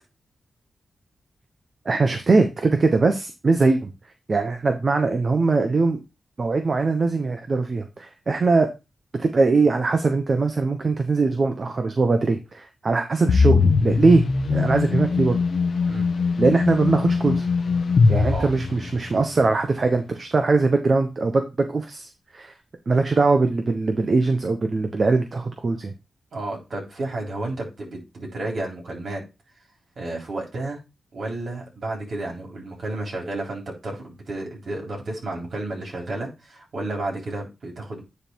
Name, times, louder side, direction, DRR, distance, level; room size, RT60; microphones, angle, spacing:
voice 1, 1.8-3.9 4.3-6.0 6.4-8.7 9.2-14.2 14.5-15.4 16.4-17.4 18.1-22.5 22.9-25.9, right 3 dB, 50° right, 6 dB, 1.0 m, -21 dB
sound 1, 13.3-19.3, left 4 dB, 70° left, 1.1 m, -21 dB
voice 2, 26.3-29.2 30.0-30.8 31.1-38.0, right 2 dB, 70° right, -1 dB, 3.7 m, -32 dB
9.7 x 3.5 x 4.5 m, 0.26 s
cardioid pair, 55°, 0 cm